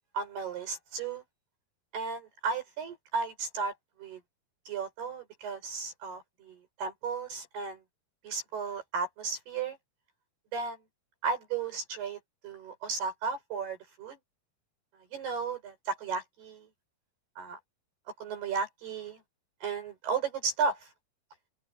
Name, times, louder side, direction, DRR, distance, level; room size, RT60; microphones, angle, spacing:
voice 1, 0.1-1.2 1.9-3.7 4.0-4.2 4.7-7.8 8.2-9.8 10.5-10.8 11.2-14.2 15.1-16.7 17.4-17.6 18.2-19.2 19.6-20.9, right 5 dB, 70° right, 7.0 m, -34 dB
open air
omnidirectional pair, 4.7 m